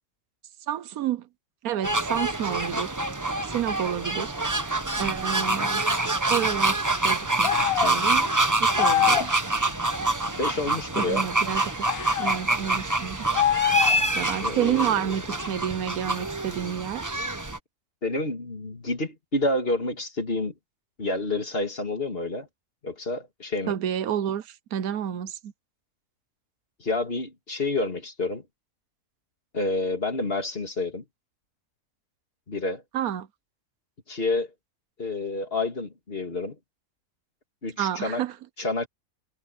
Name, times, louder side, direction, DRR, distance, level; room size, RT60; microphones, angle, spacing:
voice 1, 0.7-1.3 1.6-2.9 3.5-5.9 6.3-9.4 10.9-11.6 12.2-13.3 14.1-17.3 23.7-25.5 32.9-33.3 37.8-38.3, right 10 dB, 85° right, 1.3 m, -30 dB
sound 1, 1.8-17.6, right 2 dB, 15° right, 0.9 m, -26 dB
sound 2, 7.4-8.0 8.8-9.3 11.9-12.3 13.3-14.1, left 11 dB, 70° left, 0.6 m, -24 dB
voice 2, 10.4-11.3 14.4-14.9 18.0-20.5 21.0-22.5 22.8-23.7 26.8-28.4 29.5-31.0 32.5-32.8 34.1-34.5 35.0-36.6 37.6-38.2 38.6-38.9, left 2 dB, 40° left, 2.7 m, -29 dB
omnidirectional pair, 1.5 m